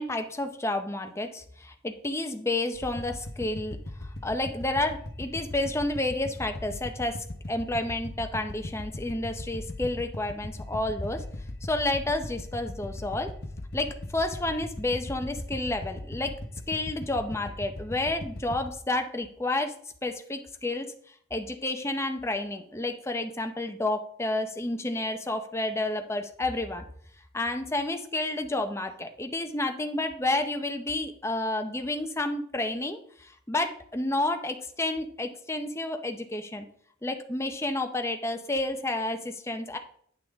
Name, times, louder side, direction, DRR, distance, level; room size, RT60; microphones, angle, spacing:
voice 1, 0.0-3.8 4.2-7.2 7.5-11.2 11.6-13.3 13.7-16.3 16.7-19.7 20.0-20.9 21.3-26.8 27.3-36.7 37.0-39.8, left 2 dB, 15° left, 6 dB, 0.6 m, -30 dB
sound 1, 2.7-18.7, left 1 dB, 50° left, 0.9 m, -39 dB
9.2 x 5.9 x 3.5 m, 0.63 s
head